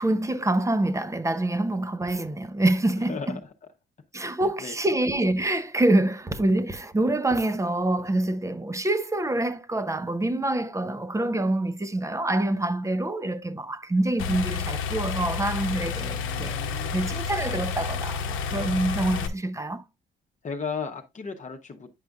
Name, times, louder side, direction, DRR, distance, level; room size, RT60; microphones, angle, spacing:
voice 1, 0.0-3.4 4.1-16.6 16.9-19.8, right 1 dB, 15° right, 0.7 m, -26 dB
voice 2, 3.1-3.4 4.4-4.7 15.9-17.1 20.4-21.9, left 5 dB, 40° left, 0.9 m, -36 dB
sound 1, 14.2-19.3, left 6 dB, 85° left, 0.9 m, -30 dB
9.3 x 5.1 x 2.3 m
cardioid pair, 90°, 20 cm